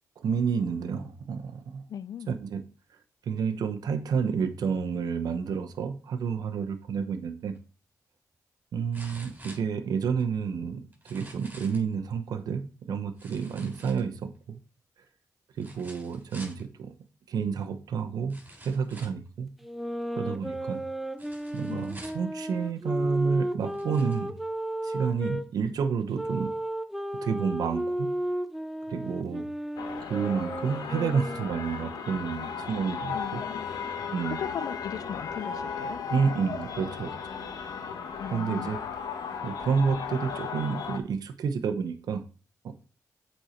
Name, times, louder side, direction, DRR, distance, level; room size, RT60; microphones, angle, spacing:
voice 1, 0.2-1.8 2.3-2.6 3.3-7.5 8.7-14.6 15.6-17.0 17.3-19.5 20.2-20.8 21.5-24.4 24.8-26.5 27.2-28.1 28.9-29.5 30.0-33.4 34.1-34.4 36.1-37.1 38.3-38.8 39.4-42.2 42.6-42.7, right 6 dB, 80° right, 0.9 m, -30 dB
voice 2, 1.9-2.3 21.7-21.9 33.1-33.7 34.3-36.0 38.2-38.7, left 9 dB, 65° left, 0.4 m, -38 dB
sound 1, 7.5-7.6 8.9-10.2 10.9-11.9 13.2-14.4 15.6-16.6 17.6-17.7 18.3-19.3 21.2-22.3 23.1-23.2 23.6-24.2 24.8-24.9, right 1 dB, 25° right, 3.7 m, -48 dB
sound 2, 19.6-25.5 26.2-31.6, right 1 dB, ahead, 0.7 m, -33 dB
sound 3, 29.8-41.0, left 6 dB, 85° left, 1.1 m, -36 dB
8.1 x 4.4 x 4.4 m
cardioid pair, 75°, 7 cm